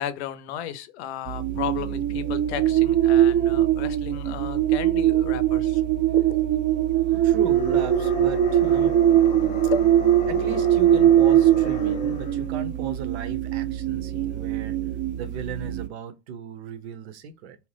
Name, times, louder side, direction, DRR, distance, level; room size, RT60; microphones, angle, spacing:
voice 1, 0.0-5.8 6.1-6.5 9.7-9.8 10.2-10.3, left 9 dB, 70° left, 0.6 m, -34 dB
sound 1, 1.3-15.9, right 11 dB, 35° right, 0.4 m, -21 dB
voice 2, 6.9-9.7 10.3-14.8 15.2-17.6, right 7 dB, 70° right, 0.7 m, -36 dB
sound 2, 7.2-12.6, left 5 dB, 25° left, 0.4 m, -37 dB
2.8 x 2.0 x 3.2 m
hypercardioid pair, 110°, 34 cm